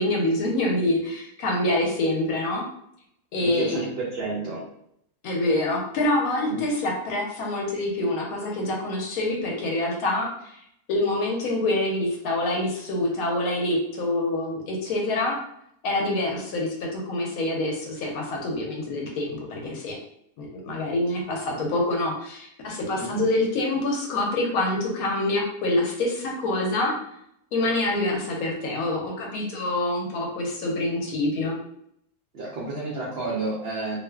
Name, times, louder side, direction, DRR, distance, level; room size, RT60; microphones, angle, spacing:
voice 1, 0.0-2.6 3.3-3.6 5.2-10.6 10.9-15.4 15.8-20.0 20.4-26.9 27.5-31.6, left 2 dB, 70° left, -1 dB, 1.0 m, -26 dB
voice 2, 3.4-4.6 6.5-6.6 23.0-23.3 32.3-34.0, right 3 dB, 85° right, -5 dB, 0.5 m, -30 dB
2.5 x 2.4 x 2.2 m, 0.72 s
omnidirectional pair, 1.7 m